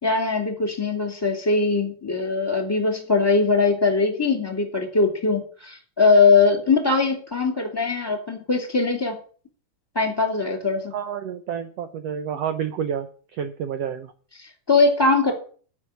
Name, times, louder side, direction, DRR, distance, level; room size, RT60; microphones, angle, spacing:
voice 1, 0.0-9.2 9.9-10.9 14.4-15.3, left 4 dB, 10° left, 4 dB, 2.4 m, -21 dB
voice 2, 10.9-14.1, right 8 dB, 85° right, 10 dB, 1.4 m, -29 dB
10.5 x 6.9 x 9.2 m, 0.43 s
omnidirectional pair, 3.8 m